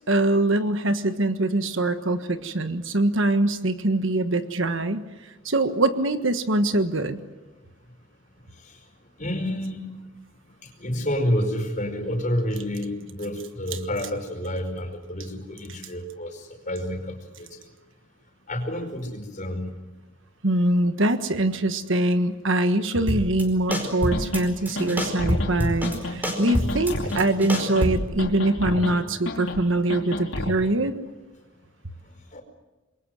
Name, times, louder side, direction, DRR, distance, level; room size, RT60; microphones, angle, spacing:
voice 1, 0.1-5.0 5.4-7.2 20.4-30.9, right 2 dB, 60° right, 9 dB, 1.5 m, -23 dB
voice 2, 9.2-9.9 10.8-16.3 16.7-17.5 18.5-19.7 26.3-26.4 30.6-30.7 32.3-32.4, equal, 40° left, 5 dB, 5.0 m, -29 dB
sound 1, 23.1-23.4 23.7-24.4 24.7-26.0 26.2-28.1, equal, 10° right, 4.8 m, -26 dB
sound 2, 23.7-23.8 24.1-24.4 24.8-25.5 25.8-26.2 26.5-27.2 27.5-27.9 28.2-28.9 29.3-29.6 29.9-30.5, left 2 dB, 70° left, 4.7 m, -30 dB
27.5 x 22.0 x 7.9 m, 1.1 s
head